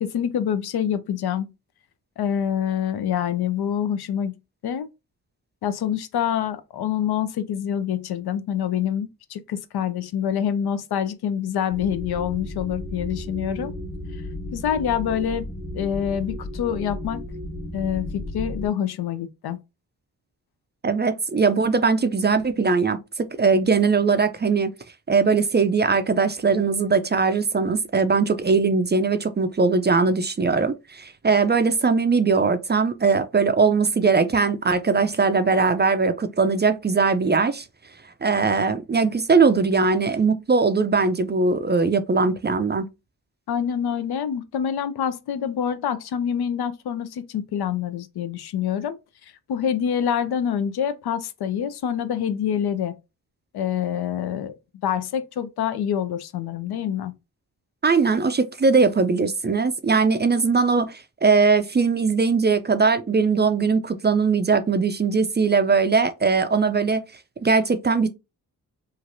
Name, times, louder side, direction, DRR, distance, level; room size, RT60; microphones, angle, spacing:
voice 1, 0.0-1.5 2.2-4.9 5.6-13.7 14.5-15.5 15.7-17.2 17.7-19.6 43.5-49.0 49.5-52.9 53.5-54.5 54.8-57.1, left 9 dB, 70° left, 0.5 m, -26 dB
sound 1, 11.7-18.7, left 1 dB, 35° left, 1.3 m, -34 dB
voice 2, 20.8-24.7 25.1-37.7 38.2-42.9 57.8-67.0 67.4-68.1, right 4 dB, 25° right, 0.4 m, -20 dB
3.1 x 2.4 x 2.6 m
supercardioid pair, 40°, 40 cm